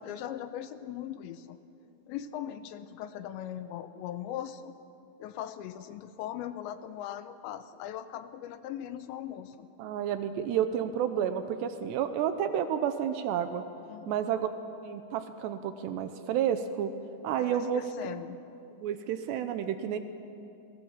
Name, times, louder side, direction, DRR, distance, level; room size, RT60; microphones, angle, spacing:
voice 1, 0.0-1.6 2.1-4.7 5.2-9.7 13.9-14.2 17.4-18.4, left 11 dB, 80° left, 11 dB, 2.9 m, -39 dB
voice 2, 9.8-13.6 14.1-14.5 14.8-16.9 17.2-18.2 18.7-20.0, right 9 dB, 75° right, 9 dB, 2.9 m, -30 dB
29.0 x 21.0 x 7.4 m, 2.7 s
omnidirectional pair, 5.4 m